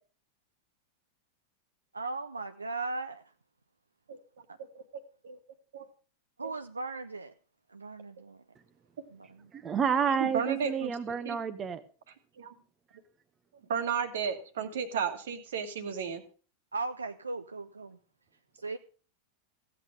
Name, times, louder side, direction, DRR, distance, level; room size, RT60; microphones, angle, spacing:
voice 1, 1.9-3.2 6.4-7.3 7.7-8.4 9.1-9.5 16.7-18.0 18.5-18.8, right 3 dB, 80° right, 0.5 m, -37 dB
voice 2, 9.5-11.8, right 7 dB, 25° right, 0.9 m, -30 dB
voice 3, 10.2-11.4 12.4-12.5 13.7-16.2, right 7 dB, 60° right, 1.6 m, -33 dB
15.5 x 8.3 x 5.1 m
figure-of-eight pair, 90°, 0 cm